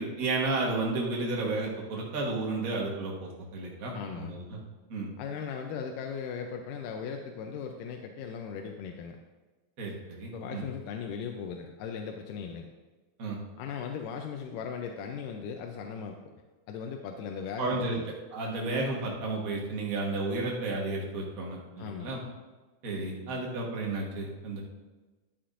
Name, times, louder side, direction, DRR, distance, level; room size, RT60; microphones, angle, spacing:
voice 1, 0.0-4.6 4.9-5.1 9.8-10.6 13.2-13.4 17.6-18.0 18.3-22.2 22.8-24.6, right 2 dB, 60° right, -2 dB, 0.9 m, -32 dB
voice 2, 3.9-4.3 5.2-9.2 10.3-12.7 13.6-16.2 16.7-18.1 21.8-22.1, left 6 dB, 85° left, 3 dB, 2.2 m, -38 dB
11.0 x 9.2 x 2.5 m, 1.2 s
omnidirectional pair, 3.7 m